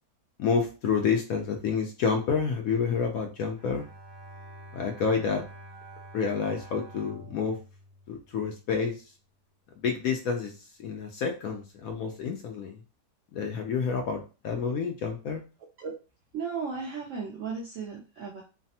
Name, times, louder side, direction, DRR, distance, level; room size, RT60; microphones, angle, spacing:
voice 1, 0.4-3.8 4.7-5.5 6.1-7.6 8.1-9.0 9.8-10.5 10.8-12.8 13.3-15.4, left 6 dB, 70° left, 3 dB, 0.9 m, -29 dB
Bowed string instrument, 3.5-8.8, right 1 dB, 50° right, 1.3 m, -48 dB
voice 2, 16.3-18.4, right 5 dB, 70° right, -3 dB, 0.7 m, -35 dB
3.2 x 2.0 x 2.7 m, 0.32 s
omnidirectional pair, 1.8 m